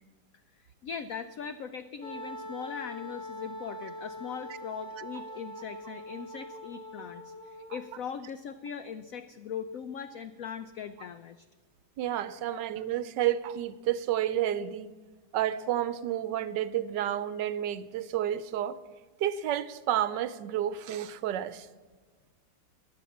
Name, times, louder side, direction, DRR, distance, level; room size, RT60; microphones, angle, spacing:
voice 1, 0.5-11.5 12.5-12.6, left 7 dB, 75° left, 0.7 m, -40 dB
Wind instrument woodwind instrument, 2.0-8.0, left 1 dB, 40° left, 0.8 m, -43 dB
voice 2, 12.0-14.9 15.3-18.8 19.2-21.7, right 11 dB, 75° right, 1.2 m, -30 dB
15.5 x 10.0 x 7.1 m
omnidirectional pair, 2.0 m